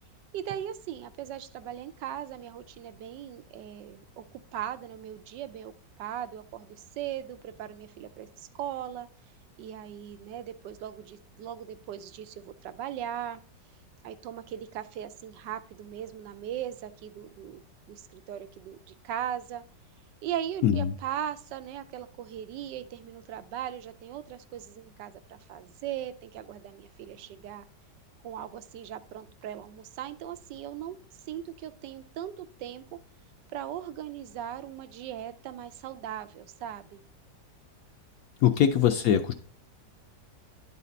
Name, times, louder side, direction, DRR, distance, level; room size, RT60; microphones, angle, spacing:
voice 1, 0.3-5.7 6.0-9.1 9.6-13.4 14.0-17.6 17.9-19.6 20.2-27.6 28.2-31.0 31.3-32.8 33.5-37.0 38.5-38.6, right 10 dB, 80° right, 10 dB, 1.2 m, -38 dB
voice 2, 20.6-20.9 38.4-39.3, left 9 dB, 70° left, 7 dB, 0.9 m, -22 dB
10.5 x 4.2 x 3.9 m, 0.42 s
omnidirectional pair, 1.9 m